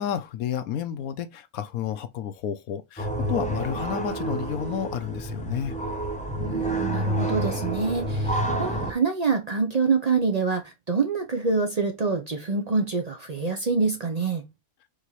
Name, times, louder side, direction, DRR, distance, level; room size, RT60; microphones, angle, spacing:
voice 1, 0.0-5.7, left 9 dB, 85° left, 1.1 m, -31 dB
sound 1, 3.0-8.9, right 1 dB, 10° left, 0.4 m, -28 dB
voice 2, 6.4-14.4, right 4 dB, 45° right, 0.5 m, -26 dB
5.1 x 2.8 x 3.0 m
omnidirectional pair, 1.5 m